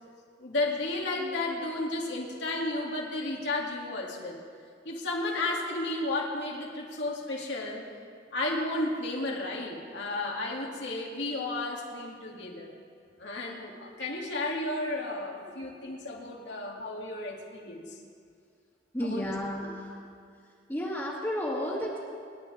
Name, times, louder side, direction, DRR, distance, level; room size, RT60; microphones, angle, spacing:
voice 1, 0.4-4.4 4.8-7.8 8.3-12.7 13.2-18.0 19.0-19.3 19.6-19.7, left 2 dB, 70° left, -2 dB, 2.6 m, -33 dB
voice 2, 18.9-20.0 20.7-22.0, equal, 15° left, -7 dB, 2.0 m, -32 dB
24.5 x 11.5 x 3.6 m, 2.2 s
head